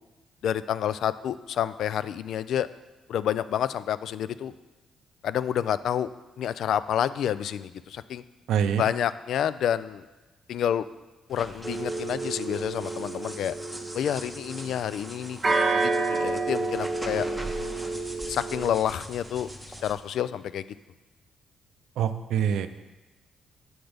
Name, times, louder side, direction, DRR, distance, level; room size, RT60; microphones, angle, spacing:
voice 1, 0.4-2.7 3.1-4.5 5.2-6.1 6.4-8.2 8.8-10.0 10.5-10.9 11.3-13.5 13.9-17.3 18.3-19.5 19.8-20.7, left 9 dB, 70° left, 15 dB, 0.3 m, -29 dB
voice 2, 8.5-8.8 22.0-22.7, right 8 dB, 80° right, 10 dB, 0.5 m, -25 dB
sound 1, 11.3-19.9, equal, ahead, 1.1 m, -41 dB
sound 2, 11.6-14.7 15.4-18.8, right 3 dB, 25° right, 0.9 m, -29 dB
7.8 x 6.1 x 5.1 m, 1.1 s
cardioid pair, 90°, 0 cm